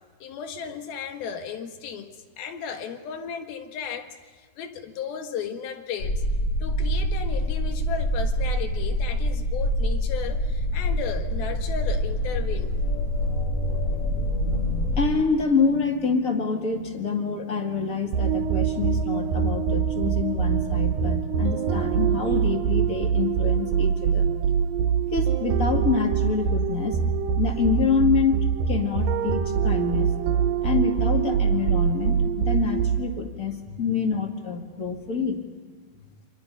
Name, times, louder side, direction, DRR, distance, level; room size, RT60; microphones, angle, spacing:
voice 1, 0.2-2.1 2.4-4.2 4.6-6.2 6.6-12.8 29.0-29.2 30.3-30.7, left 7 dB, 85° left, 6 dB, 3.5 m, -35 dB
sound 1, 6.0-15.1, equal, 45° left, 2.5 m, -25 dB
voice 2, 14.0-24.3 24.7-24.8 25.1-27.0 27.4-30.1 30.6-35.4, left 5 dB, 30° left, 3 dB, 1.9 m, -26 dB
sound 2, 18.1-33.3, right 7 dB, 80° right, 2.7 m, -24 dB
29.0 x 25.5 x 5.5 m, 1.5 s
omnidirectional pair, 4.1 m